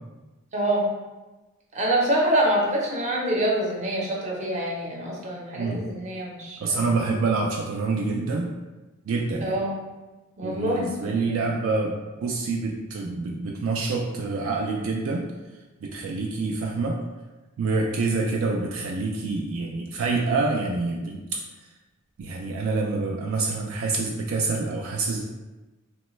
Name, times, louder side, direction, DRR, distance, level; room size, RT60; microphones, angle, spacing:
voice 1, 0.5-0.9 1.7-6.8 9.4-9.7 10.4-11.1, right 1 dB, 35° right, -4 dB, 0.6 m, -25 dB
voice 2, 6.6-8.5 9.1-9.6 10.4-15.2 15.8-17.0 17.6-21.4 22.2-25.2, right 3 dB, 70° right, 0 dB, 0.3 m, -27 dB
3.0 x 2.1 x 3.0 m, 1.1 s
head